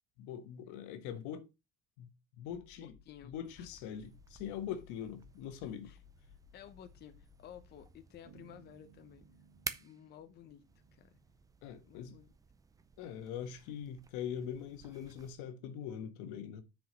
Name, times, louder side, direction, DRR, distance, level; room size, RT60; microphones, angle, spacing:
voice 1, 0.2-1.5 2.0-2.1 2.4-2.9 3.3-5.9 11.6-12.2 13.0-16.6, left 9 dB, 70° left, 1.3 m, -42 dB
sound 1, 2.4-7.9, left 8 dB, 55° left, 2.4 m, -61 dB
voice 2, 2.8-3.7 5.8-6.0 6.5-9.4 9.8-11.2 11.9-12.3, left 10 dB, 35° left, 0.7 m, -55 dB
sound 2, 3.4-15.3, right 5 dB, 10° right, 0.4 m, -52 dB
Bass guitar, 8.2-12.0, right 5 dB, 55° right, 2.4 m, -63 dB
6.3 x 5.1 x 5.1 m
cardioid pair, 150°, 31 cm